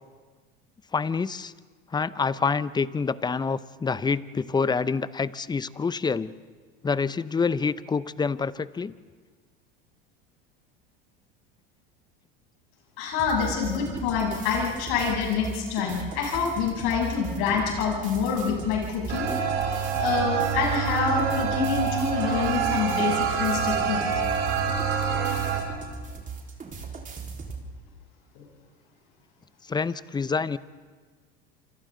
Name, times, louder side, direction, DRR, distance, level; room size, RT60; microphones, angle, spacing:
voice 1, 0.9-1.5 1.9-6.3 6.8-8.9 29.7-30.6, left 5 dB, 15° left, 16 dB, 0.7 m, -27 dB
voice 2, 13.0-24.0 28.3-28.4, left 6 dB, 70° left, -2 dB, 8.0 m, -27 dB
sound 1, 13.2-27.6, right 4 dB, 25° right, 4.2 m, -38 dB
sound 2, 19.1-25.6, right 7 dB, 70° right, 5.7 m, -26 dB
28.0 x 27.0 x 3.9 m, 1.5 s
hypercardioid pair, 95°, 29 cm